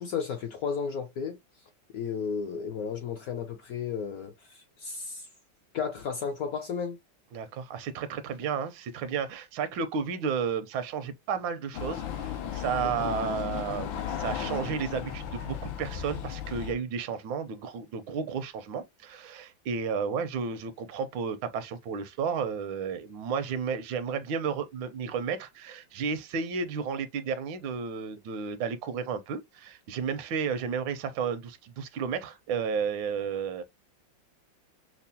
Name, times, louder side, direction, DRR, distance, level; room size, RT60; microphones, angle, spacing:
voice 1, 0.0-1.4 1.9-5.3 5.7-7.0 12.8-13.1, left 6 dB, 70° left, 0.9 m, -33 dB
voice 2, 7.3-33.6, right 6 dB, 80° right, 1.3 m, -32 dB
sound 1, 11.7-16.7, left 9 dB, 85° left, 1.4 m, -35 dB
5.7 x 2.0 x 2.6 m
omnidirectional pair, 2.1 m